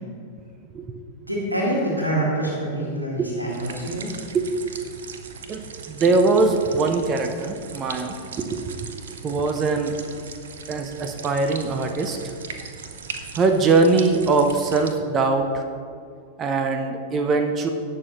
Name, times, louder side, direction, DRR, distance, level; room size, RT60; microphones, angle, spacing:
voice 1, 1.3-4.1, right 1 dB, 85° right, -3 dB, 1.9 m, -26 dB
sound 1, 3.5-14.9, right 5 dB, 65° right, 0.7 m, -39 dB
voice 2, 5.5-8.7 9.2-10.0 10.7-12.2 13.3-15.6 16.4-17.7, right 3 dB, 25° right, 6 dB, 0.7 m, -22 dB
17.0 x 6.5 x 3.0 m, 2.3 s
figure-of-eight pair, 90°, 0 cm